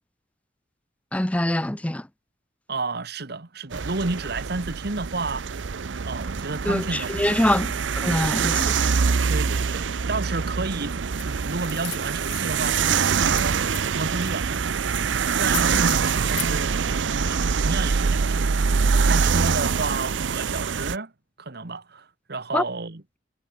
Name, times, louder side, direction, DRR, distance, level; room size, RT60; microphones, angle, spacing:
voice 1, 1.1-2.1 6.7-9.1 22.5-22.6, left 1 dB, 5° left, 0.5 m, -24 dB
voice 2, 2.7-5.5 6.0-7.1 9.3-11.0 11.2-13.6 13.9-14.7 15.2-21.1 21.4-23.0, right 3 dB, 60° right, 1.5 m, -31 dB
sound 1, 3.7-21.0, right 5 dB, 85° right, 0.6 m, -24 dB
sound 2, 11.1-11.3 11.6-12.7 13.1-14.3 14.9-15.0 15.3-16.5, left 17 dB, 70° left, 3.0 m, -37 dB
head